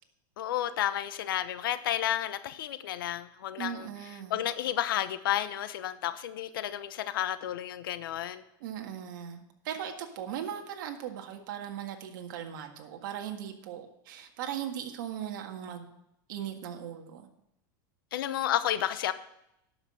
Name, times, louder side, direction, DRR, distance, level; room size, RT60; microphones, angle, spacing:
voice 1, 0.4-8.4 18.1-19.1, left 12 dB, 85° left, 12 dB, 0.9 m, -31 dB
voice 2, 3.6-4.4 8.6-15.9 16.3-17.3, right 9 dB, 70° right, 4 dB, 1.7 m, -38 dB
12.0 x 6.0 x 7.7 m, 0.80 s
supercardioid pair, 125°, 11 cm